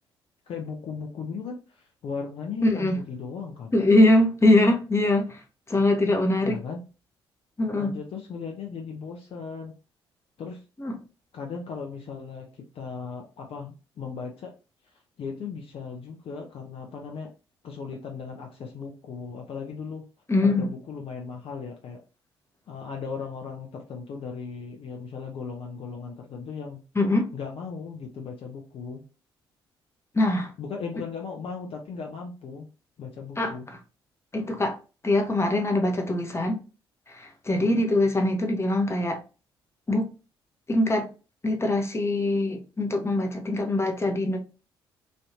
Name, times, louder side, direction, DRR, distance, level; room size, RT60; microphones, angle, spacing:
voice 1, 0.5-3.8 6.4-6.8 7.8-9.7 10.4-10.6 11.3-14.5 14.8-17.3 17.6-20.0 20.4-22.0 22.7-26.8 27.3-29.0 30.6-32.7 33.0-33.7 37.6-37.9, left 5 dB, 45° left, 0.6 m, -37 dB
voice 2, 2.6-3.0 3.7-6.6 7.6-8.0 10.8-11.0 20.3-20.7 26.9-27.3 30.1-30.5 33.4-33.8 34.3-34.8 35.0-36.6 37.1-39.2 39.9-40.1 40.7-41.1 41.4-44.4, left 2 dB, 20° left, 0.9 m, -23 dB
3.2 x 2.7 x 2.7 m
figure-of-eight pair, 45°, 13 cm